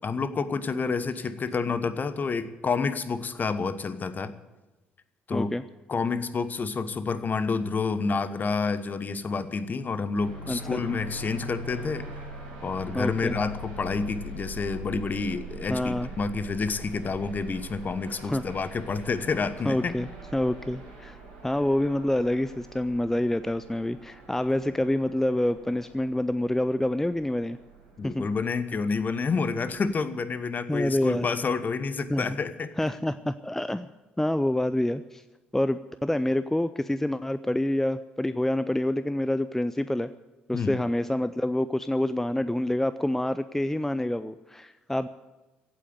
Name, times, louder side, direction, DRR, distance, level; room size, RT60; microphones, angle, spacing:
voice 1, 0.0-4.3 5.3-5.5 5.9-12.1 12.6-20.0 28.0-32.7 40.5-40.7, left 4 dB, 35° left, 13 dB, 1.1 m, -29 dB
voice 2, 5.3-5.6 10.4-10.8 12.9-13.4 15.7-16.1 18.2-18.4 19.6-21.2 21.4-27.6 28.0-28.3 30.7-31.3 32.1-32.4 32.8-33.9 34.2-35.2 35.5-40.1 40.5-45.1, left 1 dB, 5° left, 14 dB, 0.5 m, -27 dB
sound 1, 10.2-29.9, right 2 dB, 75° right, 5.8 m, -43 dB
16.0 x 8.5 x 9.4 m, 1.1 s
figure-of-eight pair, 50°, 5 cm